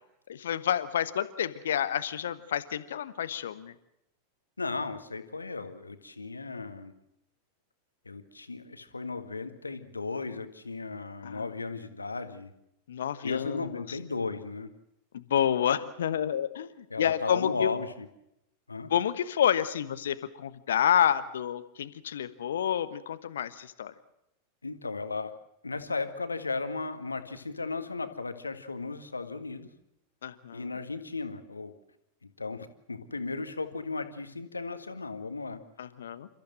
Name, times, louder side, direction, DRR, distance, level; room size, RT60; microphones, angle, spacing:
voice 1, 0.3-3.7 11.2-11.5 12.9-14.0 15.1-17.7 18.9-23.9 30.2-30.7 35.8-36.3, left 9 dB, 65° left, 13 dB, 1.2 m, -29 dB
voice 2, 4.6-6.9 8.1-12.5 13.2-14.7 16.9-18.1 18.7-18.9 24.6-25.3 25.6-29.7 30.5-31.7 32.2-35.6, left 3 dB, 80° left, 9 dB, 1.9 m, -35 dB
30.0 x 14.5 x 7.7 m, 0.82 s
figure-of-eight pair, 90°, 0 cm